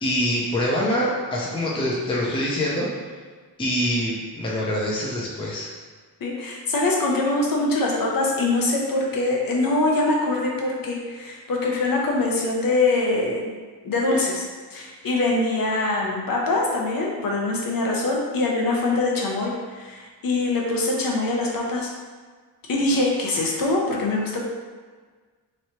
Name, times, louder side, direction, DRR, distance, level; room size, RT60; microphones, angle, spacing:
voice 1, 0.0-2.9 3.6-5.7, equal, 15° left, -5 dB, 0.5 m, -25 dB
voice 2, 6.2-13.5 13.8-14.4 14.7-21.9 22.7-24.4, left 2 dB, 60° left, -2 dB, 0.7 m, -23 dB
3.1 x 2.7 x 4.3 m, 1.5 s
wide cardioid pair, 175°, 40 cm